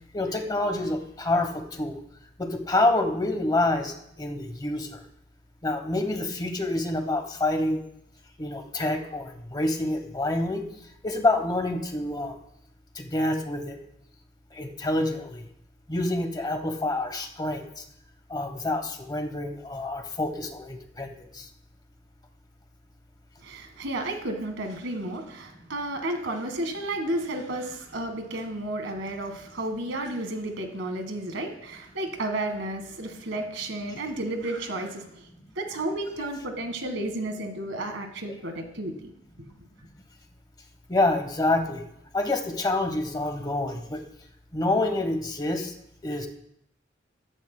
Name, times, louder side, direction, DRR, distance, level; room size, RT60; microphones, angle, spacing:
voice 1, 0.1-2.0 2.4-5.0 5.6-7.8 8.4-10.6 11.0-12.4 12.9-13.8 14.5-15.5 15.9-17.8 18.3-21.5 40.9-41.8 42.1-44.0 44.5-45.7 46.0-46.3, left 2 dB, 20° left, 5 dB, 1.1 m, -27 dB
voice 2, 23.4-35.2 35.5-39.1, right 1 dB, 85° right, 5 dB, 1.6 m, -32 dB
14.0 x 12.0 x 2.2 m, 0.76 s
head